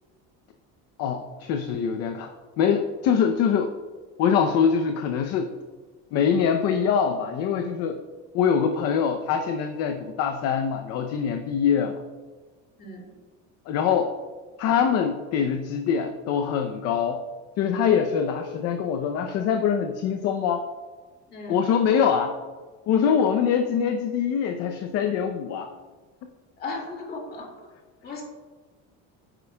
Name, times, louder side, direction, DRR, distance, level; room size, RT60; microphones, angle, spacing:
voice 1, 1.0-2.3 2.6-3.7 4.2-5.5 6.1-8.0 8.3-12.0 13.7-14.1 14.6-17.2 17.6-20.6 21.5-22.3 22.9-25.7, left 7 dB, 55° left, 5 dB, 0.6 m, -23 dB
voice 2, 12.8-13.1 21.3-21.6 26.6-27.5 28.0-28.2, left 3 dB, 30° left, 0 dB, 2.1 m, -36 dB
10.5 x 8.9 x 2.2 m, 1.3 s
cardioid pair, 160°, 31 cm